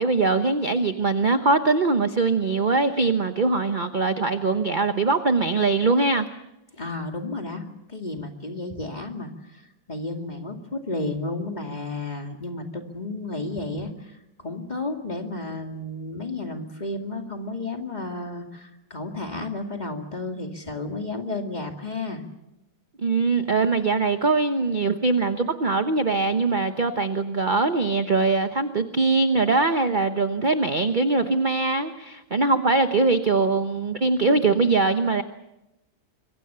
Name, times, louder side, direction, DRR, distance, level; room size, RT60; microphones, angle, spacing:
voice 1, 0.0-6.3 23.0-35.2, right 3 dB, 35° right, 8 dB, 0.8 m, -22 dB
voice 2, 6.8-9.3 9.9-22.2, left 2 dB, 20° left, 4 dB, 2.4 m, -32 dB
25.5 x 23.5 x 6.9 m, 0.92 s
omnidirectional pair, 2.0 m